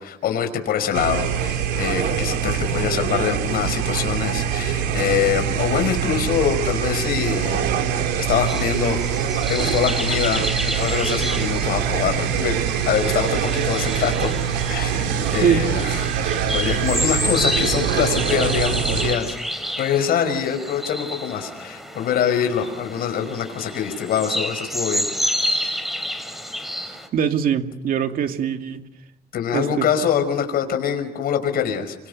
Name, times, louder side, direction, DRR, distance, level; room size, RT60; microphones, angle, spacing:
voice 1, 0.0-7.9 8.3-14.3 14.7-25.5 29.3-32.0, left 8 dB, 65° left, 7 dB, 5.4 m, -24 dB
sound 1, 0.9-19.2, right 8 dB, 85° right, 3.5 m, -24 dB
sound 2, 8.5-27.1, equal, ahead, 5.0 m, -29 dB
voice 2, 27.1-28.9 29.5-29.9, right 7 dB, 60° right, 6 dB, 2.5 m, -22 dB
28.0 x 25.5 x 6.9 m, 0.90 s
cardioid pair, 110°, 17 cm